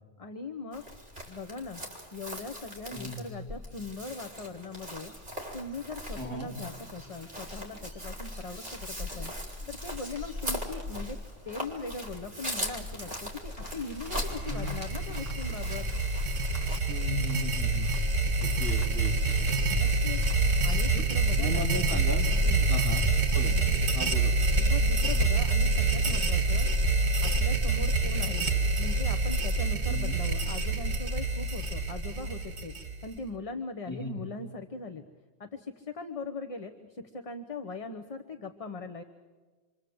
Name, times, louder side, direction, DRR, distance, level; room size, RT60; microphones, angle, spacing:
voice 1, 0.2-0.8 1.3-1.8 2.1-5.1 5.5-9.3 9.7-11.2 11.4-15.9 19.7-20.2 20.6-21.7 22.4-22.7 24.6-26.7 27.2-28.4 28.8-32.7 33.0-35.0 35.4-39.0, left 3 dB, 35° left, 6 dB, 1.0 m, -40 dB
Chirp tweet, 0.7-16.8, equal, 45° right, 3.9 m, -39 dB
voice 2, 2.9-3.2 6.2-6.5 14.4-14.7 16.9-17.9 18.4-19.4 21.4-22.3 22.7-23.1 23.3-23.7 23.9-24.5 25.0-25.2 29.9-30.2 33.9-34.2, equal, 15° left, -2 dB, 3.8 m, -36 dB
sound 1, 6.3-21.3, equal, 15° right, 3.6 m, -51 dB
sound 2, 14.1-33.2, right 2 dB, 75° right, 1.7 m, -27 dB
27.5 x 25.0 x 7.8 m, 1.4 s
omnidirectional pair, 1.1 m